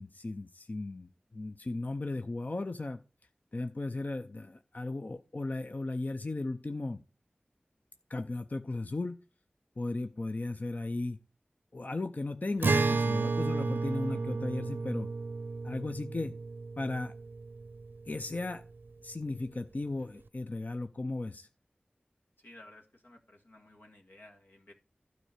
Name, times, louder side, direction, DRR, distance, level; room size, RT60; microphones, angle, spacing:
voice 1, 0.0-3.0 3.5-7.0 8.1-9.2 9.8-11.2 11.7-15.1 15.6-16.4 16.8-17.1 18.1-18.6 19.0-21.5, left 2 dB, 55° left, 9 dB, 0.5 m, -36 dB
Acoustic guitar, 12.6-18.1, right 3 dB, 75° right, 0.5 m, -32 dB
voice 2, 22.4-24.7, left 1 dB, 85° left, 1 dB, 1.8 m, -55 dB
12.0 x 4.4 x 6.5 m, 0.36 s
wide cardioid pair, 45°, 3 cm